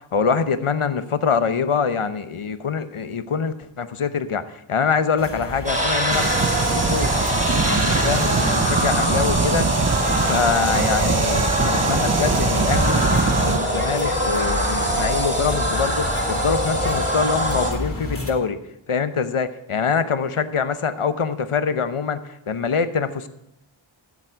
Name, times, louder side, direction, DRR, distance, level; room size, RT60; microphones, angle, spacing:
voice 1, 0.1-6.3 6.7-7.1 7.5-9.7 10.3-18.6 18.9-23.3, left 6 dB, 85° left, 11 dB, 1.0 m, -24 dB
sound 1, 5.2-18.3, left 1 dB, 25° left, 2.7 m, -30 dB
sound 2, 5.7-17.7, equal, 15° right, 4.2 m, -24 dB
sound 3, 6.1-13.6, right 4 dB, 30° right, 0.7 m, -23 dB
14.5 x 7.4 x 4.6 m, 0.84 s
wide cardioid pair, 50°, 49 cm